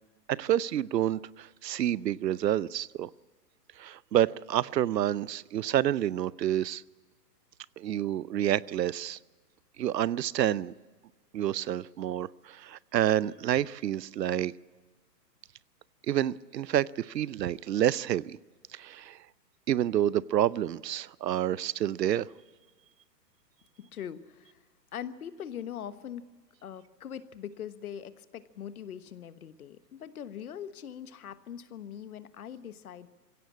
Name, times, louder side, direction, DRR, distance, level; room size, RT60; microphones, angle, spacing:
voice 1, 0.3-3.1 3.8-6.8 7.8-9.2 9.8-10.7 11.3-14.5 16.1-18.4 18.7-19.2 19.7-22.3, right 11 dB, 80° right, 0.7 m, -28 dB
voice 2, 23.8-24.6 24.9-26.2 26.6-33.1, left 9 dB, 60° left, 1.3 m, -42 dB
23.0 x 16.5 x 8.5 m
hypercardioid pair, 165°, 49 cm